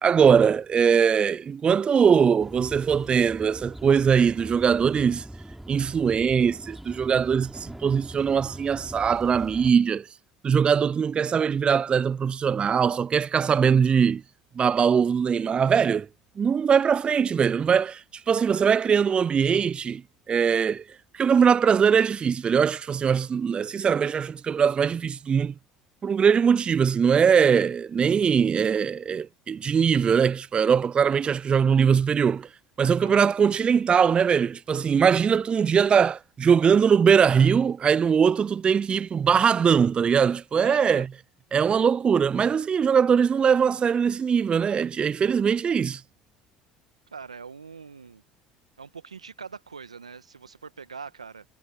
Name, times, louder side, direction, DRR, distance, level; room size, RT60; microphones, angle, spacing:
voice 1, 0.0-5.3 5.7-10.1 10.4-14.2 14.6-16.1 16.4-20.0 20.3-20.8 21.1-25.5 26.0-32.5 32.8-41.1 41.5-46.0, right 7 dB, 30° right, 0.4 m, -21 dB
sound 1, 2.4-9.7, right 1 dB, 5° right, 3.1 m, -41 dB
voice 2, 33.0-33.3 40.6-41.1 47.1-48.2 48.8-51.4, right 5 dB, 90° right, 1.5 m, -42 dB
hypercardioid pair, 65°, 3 cm